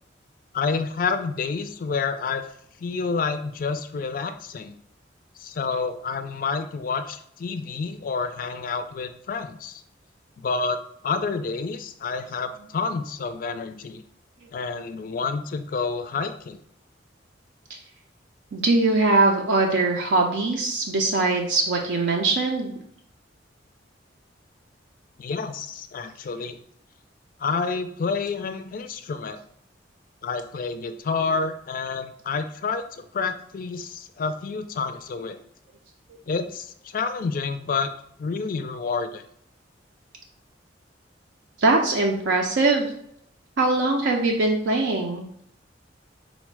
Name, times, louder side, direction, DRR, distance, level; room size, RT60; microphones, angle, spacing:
voice 1, 0.5-2.5 2.8-4.7 5.4-9.8 10.4-14.0 14.5-16.6 25.2-26.6 27.4-29.4 30.2-35.4 36.3-37.9 38.2-39.2, left 4 dB, 50° left, 9 dB, 0.3 m, -29 dB
voice 2, 18.5-22.7 41.6-42.9 43.6-45.3, right 3 dB, 75° right, 0 dB, 0.5 m, -21 dB
4.1 x 2.1 x 4.5 m, 0.69 s
head